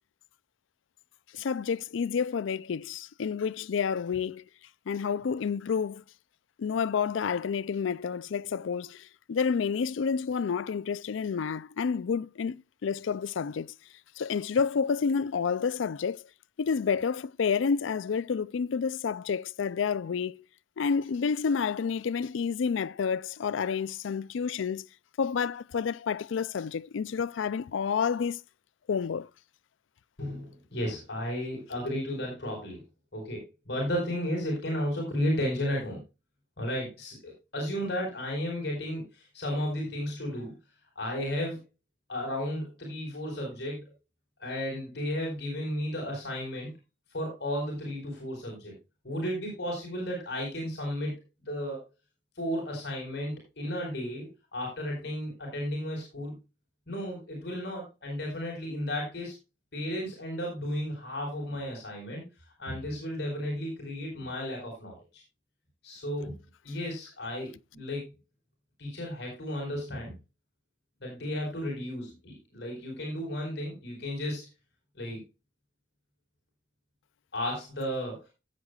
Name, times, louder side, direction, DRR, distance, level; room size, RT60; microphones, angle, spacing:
voice 1, 1.3-4.4 4.9-6.0 6.6-13.7 14.2-16.2 16.6-20.4 20.8-24.9 25.2-28.4 28.9-29.3, left 6 dB, 85° left, 0.4 m, -29 dB
voice 2, 30.2-32.8 33.1-36.0 36.6-40.5 40.9-41.6 42.1-43.8 44.4-46.7 47.1-48.7 49.0-51.9 52.4-56.4 56.9-59.3 59.7-62.2 62.6-65.0 65.8-66.4 66.6-68.0 68.8-70.1 71.0-74.5 74.9-75.2 77.3-78.3, equal, 60° left, 4.5 m, -33 dB
15.5 x 8.1 x 2.3 m
head